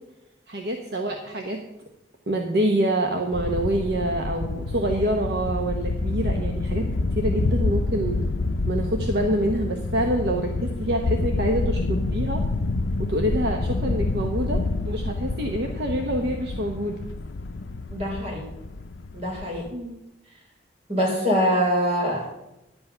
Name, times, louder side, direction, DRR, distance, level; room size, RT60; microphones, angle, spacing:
voice 1, 0.5-1.6 2.3-6.8 7.2-8.2 8.7-12.4 13.1-17.0 19.7-20.1, right 1 dB, 60° right, 3 dB, 1.0 m, -26 dB
sound 1, 3.3-19.7, left 3 dB, 85° left, 0.6 m, -28 dB
voice 2, 17.9-18.5 19.1-19.7 20.9-22.5, equal, 35° right, -2 dB, 4.0 m, -24 dB
11.0 x 8.1 x 5.7 m, 0.93 s
head